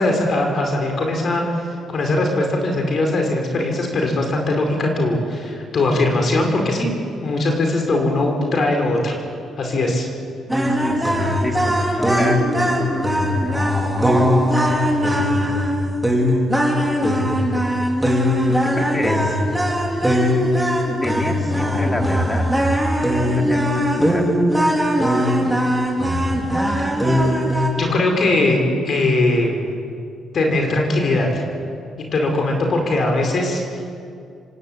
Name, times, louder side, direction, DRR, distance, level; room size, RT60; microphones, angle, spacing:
voice 1, 0.0-6.9 7.2-9.2 9.6-10.1 27.7-28.6 28.8-29.7 30.3-31.4 32.1-33.8, left 2 dB, 50° left, 2 dB, 5.0 m, -20 dB
sound 1, 10.5-27.7, equal, 5° right, 4.5 m, -19 dB
voice 2, 10.6-13.1 13.4-13.6 14.0-14.3 15.1-15.9 18.2-19.4 21.0-22.5 23.2-24.2, left 1 dB, 15° left, 2 dB, 3.8 m, -29 dB
26.0 x 18.5 x 9.1 m, 2.4 s
cardioid pair, 90°, 0 cm